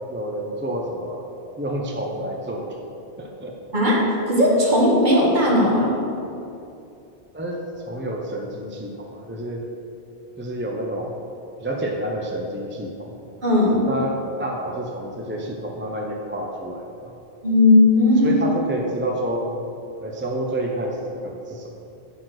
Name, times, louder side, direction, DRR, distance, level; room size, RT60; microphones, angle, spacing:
voice 1, 0.1-2.7 3.2-3.6 7.3-9.7 10.4-11.1 11.6-13.1 13.9-17.1 18.2-19.5 20.0-21.7, right 1 dB, 15° right, 0 dB, 0.6 m, -29 dB
voice 2, 4.3-5.9 13.4-13.9 17.4-18.4, left 1 dB, 45° right, -3 dB, 1.7 m, -17 dB
10.0 x 4.5 x 6.5 m, 2.7 s
omnidirectional pair, 1.1 m